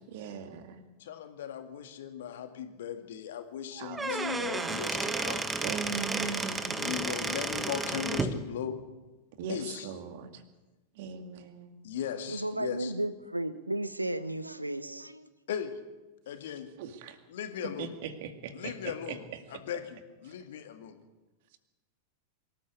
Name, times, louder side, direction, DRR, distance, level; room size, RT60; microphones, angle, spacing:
voice 1, 0.1-0.8 3.8-4.8 5.6-7.0 9.4-10.4 11.0-11.8 16.8-17.2 17.8-19.2, right 6 dB, 50° right, 8 dB, 2.2 m, -40 dB
voice 2, 1.0-5.5 6.7-8.8 9.5-9.9 11.8-12.9 15.5-15.7 16.3-16.7 17.3-17.9 18.5-21.0, left 9 dB, 60° left, 7 dB, 2.2 m, -37 dB
Squeak / Wood, 3.8-8.4, right 3 dB, 10° right, 1.5 m, -32 dB
voice 3, 12.3-15.3, right 1 dB, 85° right, 14 dB, 1.0 m, -34 dB
24.5 x 13.5 x 8.3 m, 1.1 s
figure-of-eight pair, 90°, 0 cm